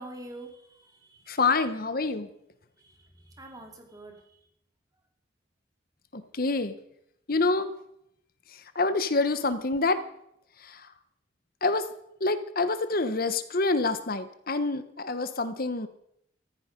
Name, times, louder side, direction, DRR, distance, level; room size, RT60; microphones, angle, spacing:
voice 1, 0.0-1.4 2.8-4.4, right 1 dB, 20° right, 3 dB, 2.7 m, -46 dB
voice 2, 1.3-2.3 6.1-6.7 7.3-7.7 8.5-10.0 10.6-10.9 11.6-11.9 12.2-15.9, left 3 dB, 50° left, 11 dB, 1.2 m, -27 dB
14.5 x 14.5 x 5.3 m, 0.76 s
head